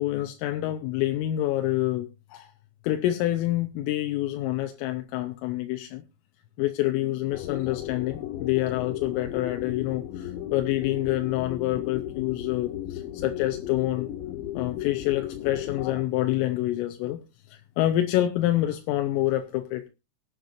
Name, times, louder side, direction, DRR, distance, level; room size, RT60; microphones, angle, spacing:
voice 1, 0.0-2.5 2.8-6.0 6.6-14.1 14.6-17.2 17.5-19.9, left 14 dB, 85° left, 6 dB, 3.5 m, -27 dB
sound 1, 7.3-16.0, left 12 dB, 70° left, 4.0 m, -35 dB
23.0 x 8.0 x 2.5 m, 0.25 s
omnidirectional pair, 5.8 m